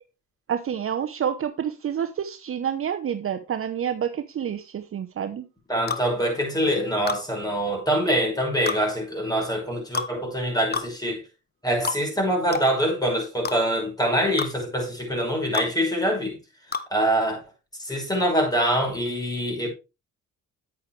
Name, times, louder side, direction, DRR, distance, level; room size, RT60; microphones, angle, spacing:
voice 1, 0.5-5.4, right 8 dB, 45° right, 0.9 m, -28 dB
voice 2, 5.7-11.2 11.6-16.4 16.9-17.4 17.8-19.7, equal, 10° left, 5.5 m, -24 dB
sound 1, 5.9-6.1 7.1-7.2 8.7-8.8 9.9-10.1 10.7-10.9 11.8-12.0 12.5-12.7 13.4-13.6 14.4-14.5 15.5-15.7 16.7-16.9, left 5 dB, 30° left, 1.0 m, -28 dB
9.3 x 8.5 x 3.3 m
cardioid pair, 90°, 30 cm